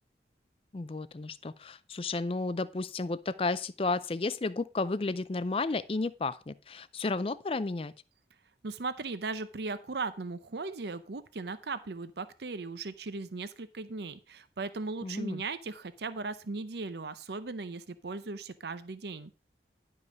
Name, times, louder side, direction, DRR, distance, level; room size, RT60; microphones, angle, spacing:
voice 1, 0.7-7.9 15.0-15.4, left 3 dB, 30° left, 0.4 m, -32 dB
voice 2, 8.6-19.3, right 3 dB, 70° right, 0.6 m, -38 dB
11.0 x 5.5 x 5.1 m
head